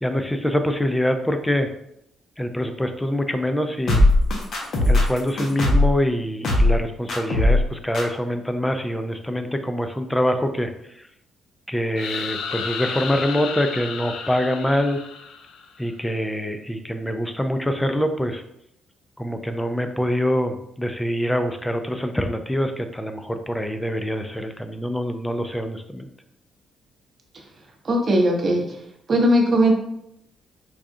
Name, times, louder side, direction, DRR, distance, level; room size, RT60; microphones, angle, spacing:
voice 1, 0.0-1.7 2.4-4.0 4.8-10.7 11.0-11.1 11.7-15.0 15.8-18.4 19.2-26.1, equal, 10° left, 7 dB, 0.4 m, -25 dB
sound 1, 3.9-6.0 6.4-6.8 7.1-7.7 7.9-8.0, left 1 dB, 60° left, 0.9 m, -18 dB
sound 2, 12.0-15.8, left 6 dB, 80° left, 0.3 m, -32 dB
voice 2, 27.8-28.6 29.1-29.7, equal, 40° right, 1 dB, 0.9 m, -18 dB
4.7 x 2.3 x 2.6 m, 0.79 s
cardioid pair, 90°, 0 cm